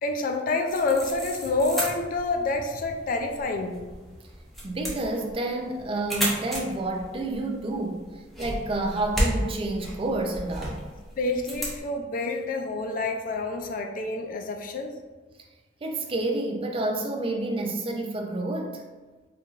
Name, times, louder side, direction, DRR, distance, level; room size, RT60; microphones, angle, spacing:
voice 1, 0.0-3.8 11.2-15.0, left 3 dB, 50° left, 4 dB, 0.4 m, -28 dB
sound 1, 0.7-11.8, equal, ahead, 0.8 m, -34 dB
voice 2, 4.6-8.1 8.4-10.8 15.8-18.8, right 2 dB, 30° right, 2 dB, 0.4 m, -29 dB
4.5 x 2.6 x 2.4 m, 1.3 s
head